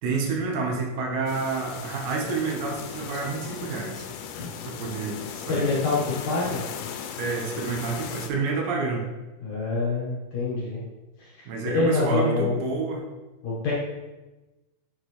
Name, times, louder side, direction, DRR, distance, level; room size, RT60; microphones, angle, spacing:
voice 1, 0.0-4.1 4.6-5.2 5.5-5.7 7.2-9.1 11.5-13.0, right 4 dB, 90° right, 0 dB, 3.5 m, -29 dB
sound 1, 1.3-8.3, left 7 dB, 85° left, 2.4 m, -37 dB
voice 2, 5.3-6.0 6.2-6.6 9.4-10.8 11.2-11.3 11.7-12.6 13.4-13.7, left 3 dB, 60° left, -6 dB, 2.1 m, -26 dB
7.8 x 6.4 x 3.2 m, 1.1 s
omnidirectional pair, 4.9 m